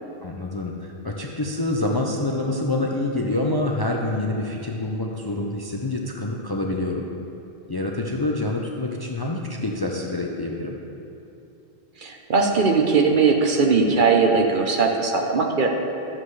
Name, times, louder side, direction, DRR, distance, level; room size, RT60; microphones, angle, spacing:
voice 1, 0.2-7.0 7.7-10.8, left 2 dB, 30° left, 0 dB, 0.4 m, -26 dB
voice 2, 12.0-15.7, right 4 dB, 55° right, 2 dB, 0.9 m, -19 dB
12.5 x 7.4 x 3.2 m, 2.7 s
omnidirectional pair, 1.1 m